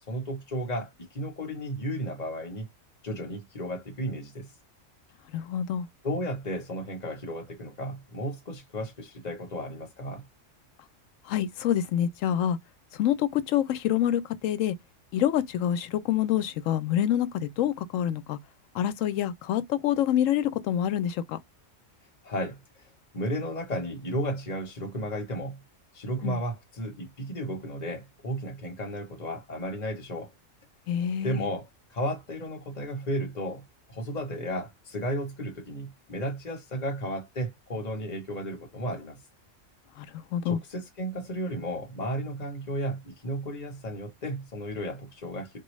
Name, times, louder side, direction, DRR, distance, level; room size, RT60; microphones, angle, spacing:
voice 1, 0.1-2.7 3.0-4.5 6.0-10.2 22.2-25.6 25.9-30.3 31.2-33.6 33.9-39.2 40.4-45.6, equal, 35° left, 1.0 m, -34 dB
voice 2, 5.3-5.9 11.3-12.6 12.9-14.8 15.1-18.4 18.7-21.4 26.2-26.4 30.9-31.5 40.0-40.6, left 10 dB, 85° left, 1.0 m, -27 dB
4.5 x 2.3 x 3.1 m
omnidirectional pair, 1.3 m